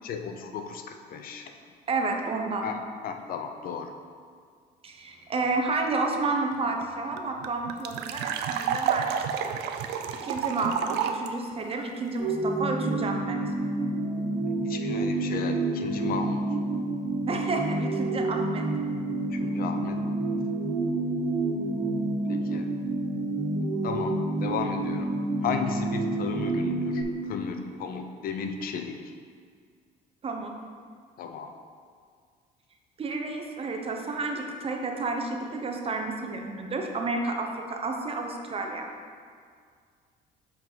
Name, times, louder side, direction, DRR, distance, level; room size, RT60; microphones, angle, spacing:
voice 1, 0.0-1.5 2.6-3.9 14.6-16.4 19.3-20.0 22.3-22.7 23.8-25.2 25.4-29.1 31.2-31.5, left 6 dB, 60° left, 6 dB, 0.6 m, -34 dB
voice 2, 1.9-2.7 4.8-9.9 10.1-13.4 17.3-18.7 30.2-30.5 33.0-38.9, right 3 dB, 35° right, 2 dB, 0.8 m, -31 dB
sound 1, 6.5-6.6 6.8-6.9 7.2-11.3, right 8 dB, 85° right, 0.5 m, -30 dB
sound 2, 12.2-27.0, right 2 dB, 50° right, 1.5 m, -29 dB
7.4 x 4.6 x 4.0 m, 2.1 s
cardioid pair, 110°, 17 cm